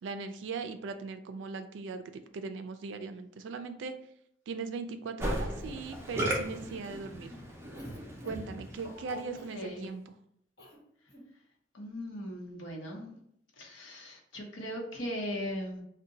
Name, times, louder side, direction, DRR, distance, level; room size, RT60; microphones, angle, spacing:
voice 1, 0.0-3.9 4.5-7.3 8.3-10.1, right 4 dB, 75° right, 8 dB, 0.3 m, -39 dB
Musical instrument, 5.2-9.5, right 1 dB, 15° right, 0.5 m, -36 dB
Cough, 7.7-8.6 9.3-9.6 10.6-10.8 11.0-11.3, equal, 60° left, 1.1 m, -53 dB
voice 2, 9.5-9.9 11.7-13.2 13.6-15.8, equal, 85° left, -1 dB, 0.8 m, -38 dB
2.6 x 2.2 x 3.8 m, 0.71 s
head